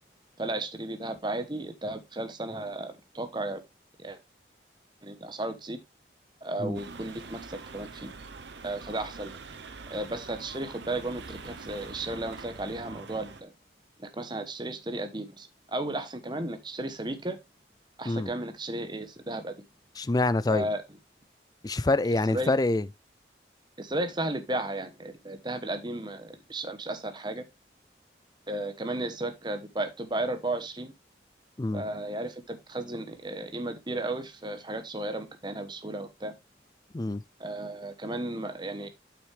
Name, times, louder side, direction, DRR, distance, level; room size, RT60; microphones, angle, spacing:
voice 1, 0.4-3.6 4.0-4.2 5.0-5.8 6.4-8.1 8.6-9.4 9.9-13.5 14.0-17.4 18.0-19.6 20.5-20.8 22.3-22.5 23.8-27.4 28.5-30.9 31.7-36.3 37.4-38.9, right 1 dB, 25° right, 1.0 m, -34 dB
sound 1, 6.7-13.4, right 4 dB, 85° right, 0.9 m, -44 dB
voice 2, 20.0-20.7 21.6-22.8 31.6-31.8 36.9-37.2, left 2 dB, 20° left, 0.4 m, -26 dB
8.0 x 6.2 x 3.3 m
head